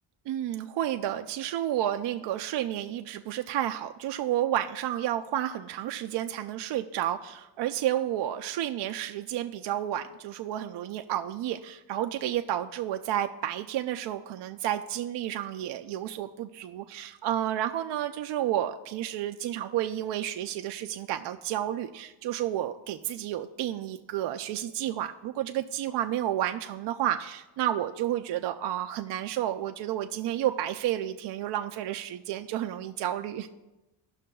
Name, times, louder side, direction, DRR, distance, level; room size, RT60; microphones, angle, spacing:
voice 1, 0.3-33.5, right 12 dB, 60° right, 6 dB, 0.5 m, -31 dB
15.0 x 5.7 x 2.3 m, 1.0 s
cardioid pair, 95°, 48 cm